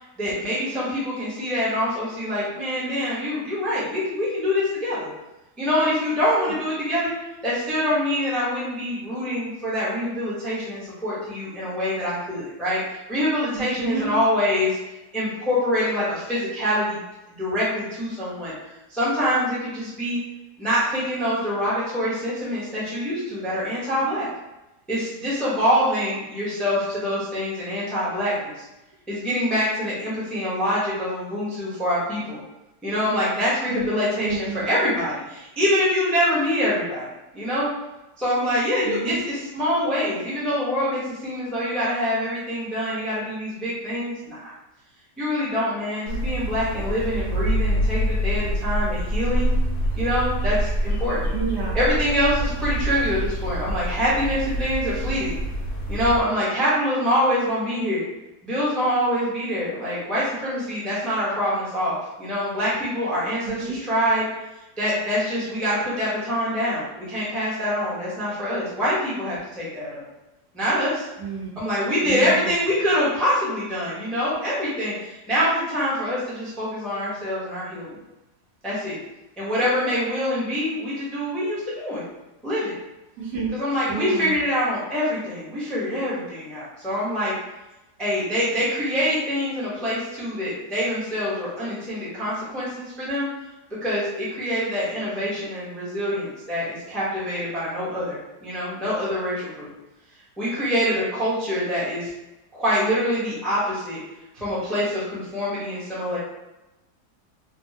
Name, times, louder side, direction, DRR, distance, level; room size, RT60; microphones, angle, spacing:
voice 1, 0.2-5.1 5.6-7.1 7.4-14.8 15.1-17.0 17.4-18.5 18.9-20.2 20.6-24.3 24.9-28.5 29.1-32.4 32.8-37.1 37.3-37.7 38.2-44.5 45.2-49.5 50.0-51.3 51.7-55.3 55.9-58.0 58.4-64.2 64.8-70.0 70.5-71.1 71.6-77.9 78.6-79.0 79.4-82.0 82.4-82.8 83.5-87.3 88.0-93.3 93.8-99.7 100.4-102.1 102.5-104.0 104.3-106.2, equal, ahead, -9 dB, 0.6 m, -25 dB
voice 2, 13.5-14.1 33.7-33.9 34.2-34.6 38.8-39.2 51.3-51.8 63.6-63.8 71.2-71.5 72.0-72.5 83.2-83.5 83.9-84.3, right 4 dB, 80° right, -4 dB, 1.3 m, -29 dB
sound 1, 46.1-56.2, right 1 dB, 70° left, 1.0 m, -26 dB
3.5 x 2.1 x 2.7 m, 0.98 s
omnidirectional pair, 1.7 m